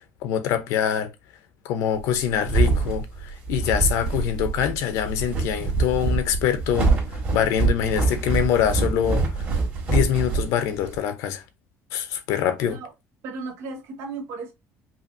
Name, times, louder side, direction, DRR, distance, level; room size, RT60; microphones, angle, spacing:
voice 1, 0.2-1.1 1.6-6.9 7.3-9.2 9.9-11.4 11.9-12.8, left 9 dB, 75° left, 0.7 m, -24 dB
sound 1, 2.1-11.0, right 3 dB, 30° right, 1.9 m, -24 dB
voice 2, 13.2-14.5, right 3 dB, 65° right, 1.0 m, -35 dB
5.5 x 2.6 x 2.5 m
cardioid pair, 175°, 5 cm